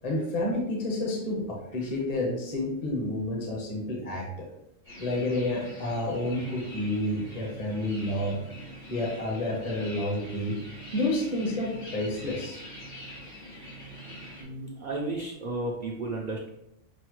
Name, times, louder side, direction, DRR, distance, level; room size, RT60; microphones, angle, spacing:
voice 1, 0.0-4.5 5.0-8.4 8.9-10.5 10.9-12.6, left 1 dB, 35° left, -2 dB, 0.8 m, -30 dB
sound 1, 4.8-14.4, equal, 85° left, 1.7 m, -44 dB
voice 2, 14.4-16.5, right 2 dB, 55° right, -2 dB, 0.6 m, -33 dB
6.2 x 2.1 x 3.0 m, 0.80 s
omnidirectional pair, 1.2 m